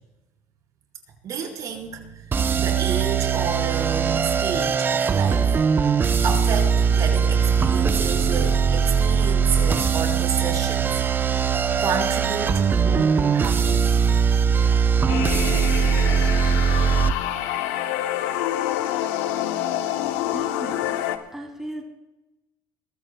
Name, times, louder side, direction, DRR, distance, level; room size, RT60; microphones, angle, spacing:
voice 1, 1.2-2.0 2.5-5.5 6.2-11.0 11.8-14.0, right 6 dB, 55° right, 0 dB, 4.6 m, -30 dB
sound 1, 1.7-13.3 14.1-14.4, right 5 dB, 70° right, 3.3 m, -41 dB
sound 2, 2.3-17.1, right 6 dB, 30° right, 0.7 m, -21 dB
sound 3, 15.1-21.2, left 12 dB, 85° left, 1.0 m, -27 dB
voice 2, 20.2-21.8, right 1 dB, 5° right, 1 dB, 3.0 m, -37 dB
22.5 x 14.5 x 2.3 m, 1.0 s
supercardioid pair, 100°, 7 cm